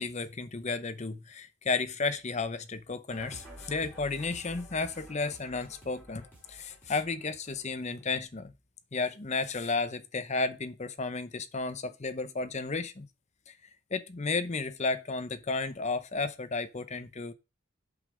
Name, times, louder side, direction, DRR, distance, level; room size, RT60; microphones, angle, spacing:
voice 1, 0.0-8.5 8.9-13.1 13.5-13.6 13.9-17.3, left 3 dB, 30° left, 0.7 m, -33 dB
sound 1, 3.1-8.1, equal, 10° left, 4.6 m, -50 dB
8.0 x 5.5 x 5.0 m
head